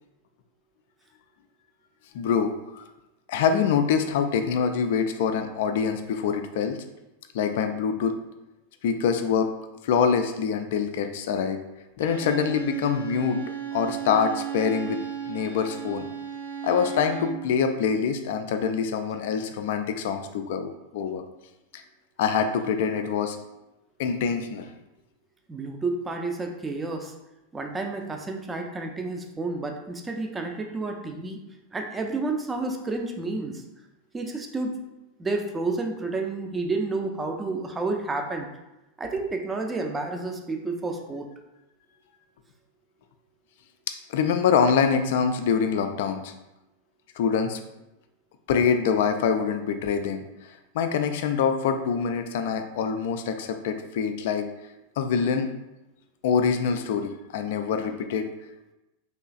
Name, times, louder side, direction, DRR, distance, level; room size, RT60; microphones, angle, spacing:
voice 1, 2.1-2.8 3.3-6.8 7.3-8.2 8.8-9.5 9.8-11.6 12.0-13.4 13.7-15.0 15.3-16.1 16.6-21.2 21.7-21.8 22.2-23.4 24.0-24.7 44.1-46.3 47.2-47.6 48.5-50.2 50.7-54.5 55.0-55.5 56.2-58.3, left 6 dB, 55° left, 7 dB, 0.3 m, -25 dB
Bowed string instrument, 12.0-17.5, right 8 dB, 80° right, 1.0 m, -35 dB
voice 2, 25.5-27.1 27.5-31.4 31.7-33.6 34.1-34.7 35.2-38.5 39.0-41.3, right 3 dB, 15° right, 3 dB, 0.4 m, -30 dB
3.3 x 3.0 x 2.4 m, 0.96 s
figure-of-eight pair, 90°, 0 cm